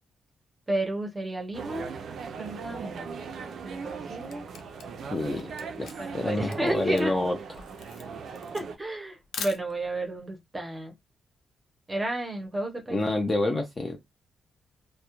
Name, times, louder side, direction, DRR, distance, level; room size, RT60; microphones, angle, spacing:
voice 1, 0.7-1.9 2.4-4.4 6.0-7.1 8.5-10.9 11.9-13.1, right 2 dB, 15° right, 0.7 m, -32 dB
sound 1, 1.5-8.8, right 5 dB, 55° right, 0.4 m, -39 dB
Camera, 4.3-10.1, left 6 dB, 85° left, 0.5 m, -42 dB
voice 2, 5.1-5.5 5.8-7.4 12.9-14.0, left 2 dB, 15° left, 0.4 m, -28 dB
2.2 x 2.0 x 2.9 m
wide cardioid pair, 175°, 0 cm